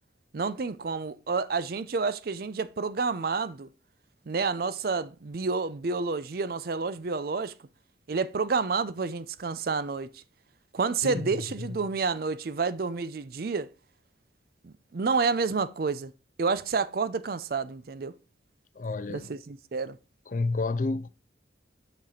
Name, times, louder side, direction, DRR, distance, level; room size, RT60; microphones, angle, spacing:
voice 1, 0.3-3.7 4.3-7.5 8.1-10.2 10.7-13.7 14.6-16.1 16.4-18.1 19.1-20.0, right 4 dB, 50° right, 0.5 m, -29 dB
voice 2, 18.8-19.3 20.3-21.1, left 3 dB, 45° left, 0.4 m, -30 dB
5.9 x 5.0 x 4.2 m
head